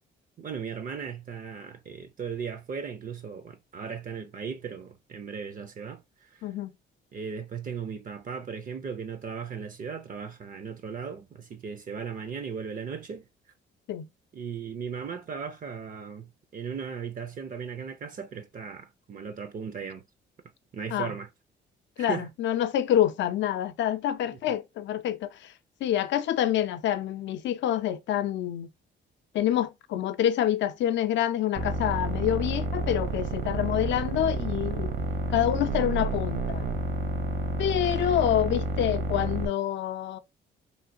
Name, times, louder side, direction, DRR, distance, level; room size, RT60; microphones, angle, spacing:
voice 1, 0.4-6.5 7.1-13.3 14.3-20.1 20.7-21.3 22.0-22.3, right 6 dB, 45° right, 0.5 m, -37 dB
voice 2, 22.0-25.5 25.8-28.7 29.3-34.9 35.3-36.7 37.6-40.2, left 11 dB, 70° left, 0.5 m, -27 dB
sound 1, 31.5-39.5, right 2 dB, 65° right, 0.9 m, -30 dB
3.1 x 2.8 x 2.6 m
cardioid pair, 90°, 20 cm